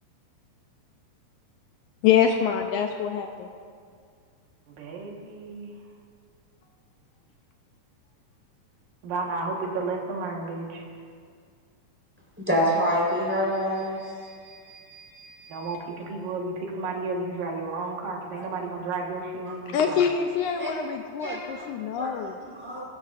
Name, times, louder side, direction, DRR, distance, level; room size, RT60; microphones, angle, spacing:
voice 1, 2.0-3.5 19.7-22.4, left 8 dB, 80° left, 4 dB, 1.9 m, -25 dB
voice 2, 4.7-5.7 9.0-10.8 15.5-20.2, right 3 dB, 85° right, 0 dB, 3.2 m, -32 dB
voice 3, 12.4-15.7 19.5-19.6 20.6-20.7 21.2-21.4 22.0-22.1 22.5-22.8, equal, 5° right, -5 dB, 3.5 m, -28 dB
21.0 x 12.5 x 2.5 m, 2.1 s
omnidirectional pair, 3.9 m